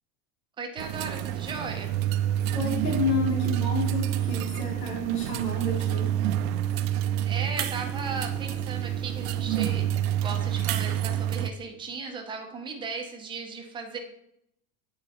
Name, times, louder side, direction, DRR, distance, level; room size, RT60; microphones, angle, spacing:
voice 1, 0.6-1.9 7.3-14.0, right 4 dB, 10° right, 2 dB, 0.5 m, -36 dB
sound 1, 0.8-11.5, right 11 dB, 60° right, 0.5 m, -28 dB
voice 2, 2.5-6.1, left 1 dB, 75° left, -2 dB, 2.8 m, -29 dB
9.2 x 4.3 x 2.9 m, 0.77 s
supercardioid pair, 165°, 46 cm